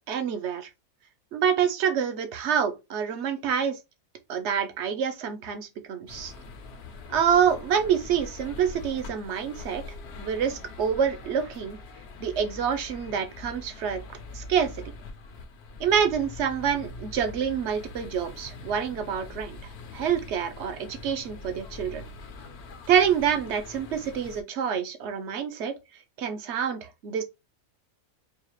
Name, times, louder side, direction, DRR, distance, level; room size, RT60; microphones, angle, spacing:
voice 1, 0.1-0.7 1.3-3.8 4.3-6.3 7.1-9.8 10.2-11.8 12.2-14.0 14.3-14.7 15.8-19.6 19.9-22.0 22.9-25.7 26.2-27.2, right 8 dB, 60° right, 1.0 m, -27 dB
sound 1, 6.1-24.4, left 3 dB, 55° left, 0.8 m, -43 dB
4.7 x 2.4 x 3.0 m
omnidirectional pair, 1.5 m